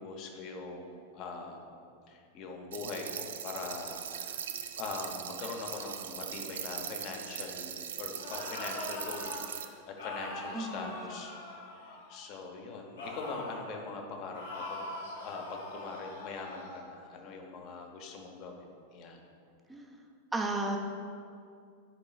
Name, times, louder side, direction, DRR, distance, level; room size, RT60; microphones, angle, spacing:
voice 1, 0.0-1.7 2.1-4.5 4.8-11.3 11.7-14.9 15.2-19.2, left 4 dB, 40° left, 2 dB, 0.8 m, -42 dB
sound 1, 2.7-9.6, right 8 dB, 60° right, 0.3 m, -40 dB
sound 2, 8.1-9.4 10.0-12.2 13.0-13.7 14.3-16.8, left 2 dB, 65° left, 1.3 m, -42 dB
voice 2, 10.5-11.0 19.7-20.0 20.3-20.8, right 2 dB, 10° right, 2 dB, 0.6 m, -34 dB
9.8 x 4.7 x 2.4 m, 2.4 s
figure-of-eight pair, 90°, 0 cm